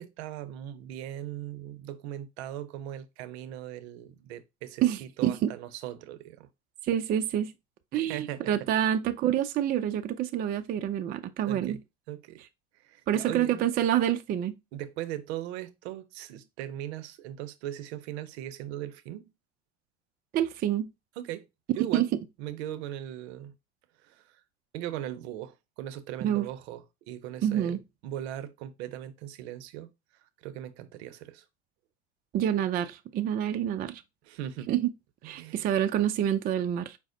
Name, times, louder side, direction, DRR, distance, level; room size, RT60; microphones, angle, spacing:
voice 1, 0.0-6.5 7.9-8.5 11.4-11.8 12.1-12.4 12.8-13.5 14.7-19.3 21.2-21.5 21.8-22.1 22.4-23.6 24.0-24.2 24.7-27.8 28.0-29.9 30.4-31.4 34.2-34.7 35.2-35.8, right 12 dB, 70° right, 0.6 m, -39 dB
voice 2, 4.8-5.5 6.9-7.5 7.9-11.8 13.1-14.6 20.3-20.9 21.9-22.1 26.2-26.5 27.4-27.8 32.3-34.0 34.7-34.9 35.2-37.0, right 10 dB, 30° right, 0.3 m, -27 dB
5.0 x 2.0 x 3.7 m
hypercardioid pair, 85°, 34 cm